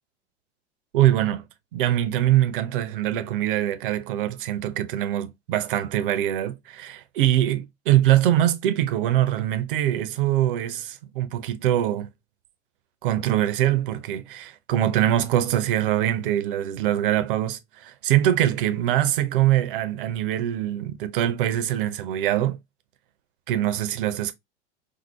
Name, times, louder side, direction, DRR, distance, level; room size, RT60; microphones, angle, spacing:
voice 1, 0.9-1.4 1.7-12.1 13.0-22.6 23.5-24.3, right 12 dB, 50° right, 0.6 m, -23 dB
4.5 x 2.0 x 3.0 m
figure-of-eight pair, 85°, 35 cm